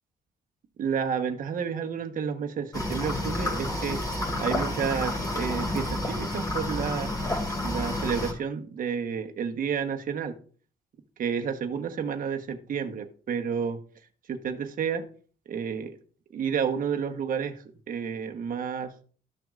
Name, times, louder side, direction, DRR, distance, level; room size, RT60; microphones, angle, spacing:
voice 1, 0.8-4.0 4.4-7.1 7.6-10.4 11.2-13.8 14.3-15.1 15.5-16.0 16.3-18.9, right 7 dB, 55° right, 1.2 m, -30 dB
sound 1, 2.7-8.3, left 1 dB, 20° left, 2.4 m, -30 dB
13.0 x 6.3 x 2.5 m
cardioid pair, 110°, 17 cm